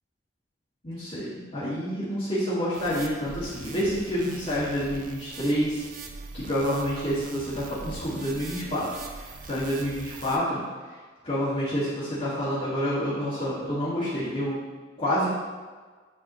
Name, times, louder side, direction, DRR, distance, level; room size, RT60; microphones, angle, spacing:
voice 1, 0.8-5.8 6.3-10.6 11.2-14.6 15.0-15.3, equal, 35° left, -12 dB, 1.7 m, -28 dB
sound 1, 2.7-10.4, right 3 dB, 45° right, 0.5 m, -42 dB
8.7 x 4.0 x 3.0 m, 1.4 s
head